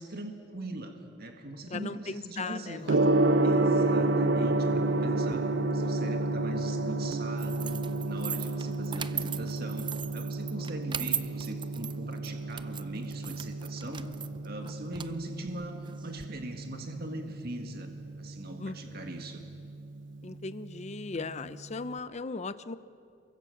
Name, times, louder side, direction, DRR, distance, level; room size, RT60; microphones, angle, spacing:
voice 1, 0.0-2.9 3.4-14.2 14.4-17.9 18.2-19.4, right 1 dB, 55° right, 4 dB, 2.0 m, -41 dB
voice 2, 1.7-3.3 10.5-10.7 14.6-14.7 18.6-19.2 20.2-22.8, left 3 dB, 35° left, 13 dB, 0.6 m, -38 dB
Gong, 2.8-21.9, right 2 dB, 75° right, 0.8 m, -31 dB
sound 1, 7.4-16.2, right 8 dB, 25° right, 0.6 m, -39 dB
28.0 x 23.5 x 7.2 m, 2.5 s
head